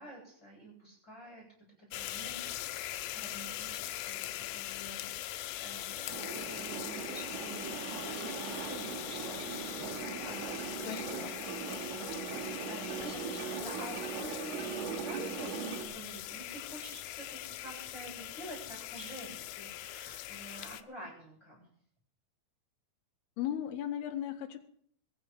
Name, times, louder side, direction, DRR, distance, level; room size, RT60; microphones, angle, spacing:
voice 1, 0.0-1.4 1.9-12.2 12.4-21.7, right 1 dB, 15° left, -4 dB, 6.3 m, -49 dB
sound 1, 1.9-20.8, left 14 dB, 85° left, 3.3 m, -41 dB
sound 2, 6.1-15.9, right 6 dB, 90° right, 4.5 m, -40 dB
voice 2, 10.9-11.3 23.4-24.6, left 11 dB, 65° left, 4 dB, 3.2 m, -36 dB
22.5 x 10.5 x 5.2 m, 0.62 s
omnidirectional pair, 5.5 m